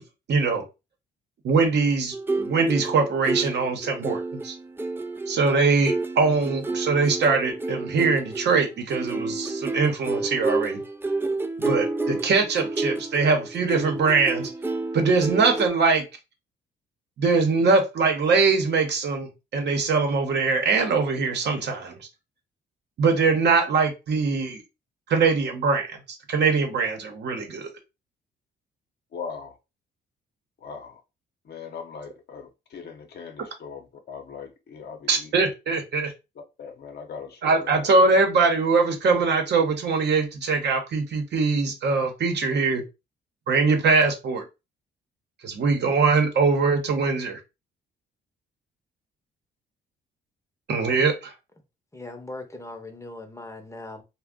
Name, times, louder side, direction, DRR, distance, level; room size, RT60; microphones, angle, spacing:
voice 1, 0.3-0.6 1.4-4.5 5.3-10.8 11.6-14.5 14.9-16.1 17.2-22.1 23.0-24.6 25.1-26.0 26.3-27.7 35.1-36.1 37.4-42.8 43.5-44.4 45.4-47.4 50.7-51.3, right 4 dB, 60° right, 0.9 m, -22 dB
sound 1, 2.1-15.7, right 3 dB, 10° right, 0.3 m, -30 dB
voice 2, 29.1-29.5 30.6-31.0 31.4-35.3 36.6-37.9, left 6 dB, 55° left, 0.8 m, -39 dB
voice 3, 51.9-54.0, left 2 dB, 15° left, 0.8 m, -39 dB
2.5 x 2.2 x 3.6 m
cardioid pair, 90°, 20 cm